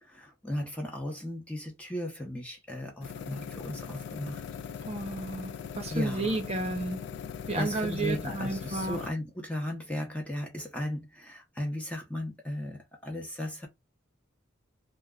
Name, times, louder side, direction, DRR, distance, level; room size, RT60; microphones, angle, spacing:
voice 1, 0.0-4.4 5.9-6.4 7.5-13.7, left 1 dB, 5° left, 0.6 m, -36 dB
sound 1, 3.0-9.1, left 7 dB, 60° left, 0.3 m, -40 dB
voice 2, 4.8-7.0 7.5-9.0, right 2 dB, 30° right, 0.7 m, -32 dB
2.2 x 2.2 x 3.5 m
head